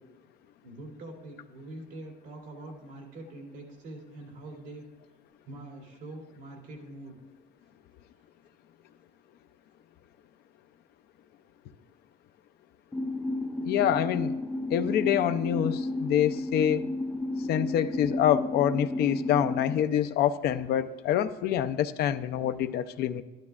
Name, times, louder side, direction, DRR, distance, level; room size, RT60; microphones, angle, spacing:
voice 1, 0.6-4.8 5.5-7.2, right 2 dB, 90° right, -1 dB, 2.8 m, -44 dB
sound 1, 12.9-19.8, left 2 dB, 10° left, 0.6 m, -32 dB
voice 2, 13.6-14.4 14.7-16.9 17.5-23.2, left 10 dB, 70° left, 10 dB, 0.5 m, -26 dB
12.5 x 11.5 x 2.4 m, 1.2 s
cardioid pair, 110°, 17 cm